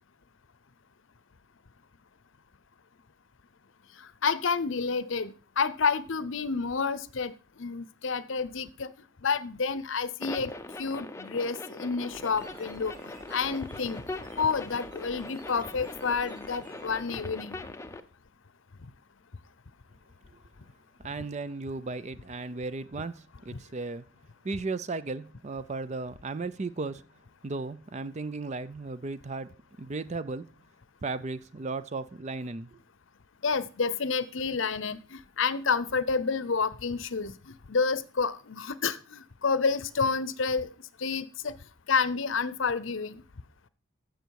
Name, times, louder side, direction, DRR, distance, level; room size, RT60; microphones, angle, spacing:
voice 1, 4.2-7.3 7.6-8.9 9.2-10.5 10.8-13.0 13.3-14.0 14.4-17.6 23.5-23.6 33.4-40.7 41.0-41.5 41.9-43.2, left 5 dB, 65° left, 0.7 m, -29 dB
sound 1, 10.2-18.0, left 2 dB, 15° left, 0.6 m, -41 dB
sound 2, 12.1-17.2, right 1 dB, 60° right, 5.4 m, -52 dB
voice 2, 21.0-24.0 24.4-27.0 27.4-30.5 31.0-32.8, right 3 dB, 35° right, 0.5 m, -35 dB
15.0 x 6.4 x 4.7 m
head